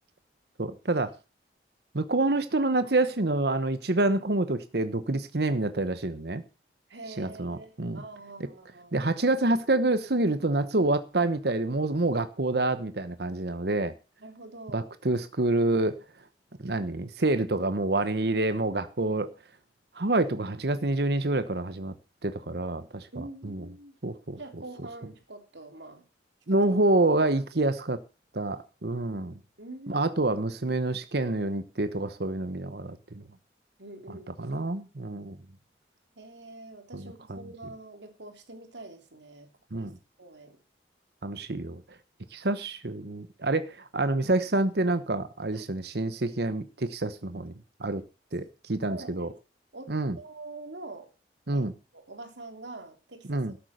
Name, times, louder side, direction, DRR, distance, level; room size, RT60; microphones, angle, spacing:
voice 1, 0.6-1.1 1.9-6.4 7.2-8.0 8.9-13.9 14.7-16.0 16.6-19.3 20.0-21.9 22.2-23.1 23.4-23.6 24.0-24.4 26.5-28.0 28.3-29.4 29.9-33.2 34.1-35.4 36.9-37.4 39.7-40.0 41.2-41.8 42.3-47.5 47.8-48.0 48.3-49.3 49.9-50.2 51.5-51.7 53.3-53.5, right 2 dB, 65° right, 12 dB, 1.0 m, -27 dB
voice 2, 6.9-9.0 14.2-14.9 23.1-24.0 24.3-26.0 26.5-26.6 27.5-27.7 29.6-30.1 33.8-34.5 36.2-39.9 40.2-40.6 45.5-45.6 48.9-49.3 49.7-51.1 51.5-53.5, right 2 dB, 80° right, 6 dB, 3.1 m, -45 dB
12.5 x 8.6 x 6.6 m, 0.33 s
head